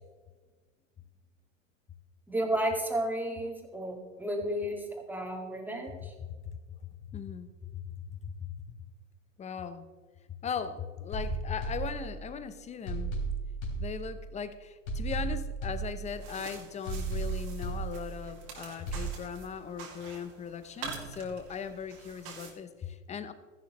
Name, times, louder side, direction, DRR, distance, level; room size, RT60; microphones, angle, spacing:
voice 1, 2.3-6.1, right 1 dB, 5° right, 2.0 m, -32 dB
voice 2, 6.0-8.8 9.4-9.8 10.4-13.1 13.8-23.3, left 7 dB, 20° left, 0.7 m, -39 dB
sound 1, 11.1-12.4 12.9-14.4 14.9-16.4 16.9-18.4 18.9-19.1, right 3 dB, 60° left, 3.1 m, -35 dB
sound 2, 16.0-22.5, right 5 dB, 55° right, 2.4 m, -46 dB
13.5 x 11.0 x 3.0 m
hypercardioid pair, 105°, 39 cm